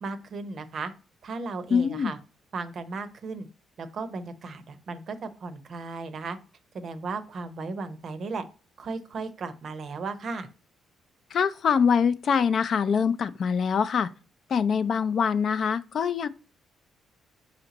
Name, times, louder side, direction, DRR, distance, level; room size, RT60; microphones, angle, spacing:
voice 1, 0.0-0.9 1.2-2.2 2.5-3.5 3.8-6.4 6.7-8.4 8.8-10.5, right 4 dB, 55° right, 0.6 m, -35 dB
voice 2, 1.7-2.1 11.3-14.1 14.5-16.3, left 6 dB, 55° left, 0.3 m, -24 dB
4.3 x 2.8 x 3.9 m
cardioid pair, 90°, 0 cm